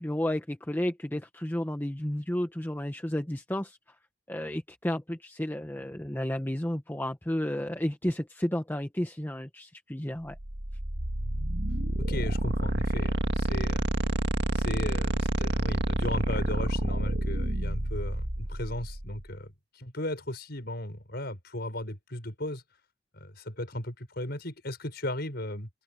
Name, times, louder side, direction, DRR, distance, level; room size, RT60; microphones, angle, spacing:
voice 1, 0.0-3.8 4.3-10.4, left 1 dB, 10° left, 0.9 m, -32 dB
sound 1, 10.3-19.2, right 1 dB, 60° right, 2.0 m, -29 dB
voice 2, 12.0-13.8 14.5-22.6 23.1-25.7, left 1 dB, 55° left, 6.0 m, -36 dB
open air
head